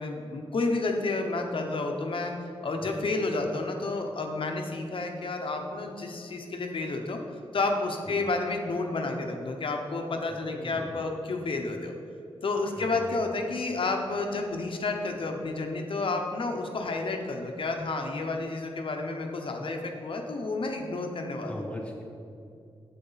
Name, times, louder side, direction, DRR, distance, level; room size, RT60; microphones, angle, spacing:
voice 1, 0.0-2.3 2.6-7.2 7.5-11.9 12.4-21.5, left 3 dB, 55° left, 3 dB, 0.8 m, -30 dB
voice 2, 10.5-11.1 12.8-13.2 21.5-22.0, left 1 dB, 10° left, -1 dB, 1.3 m, -40 dB
9.4 x 7.7 x 4.0 m, 2.6 s
wide cardioid pair, 170°, 10 cm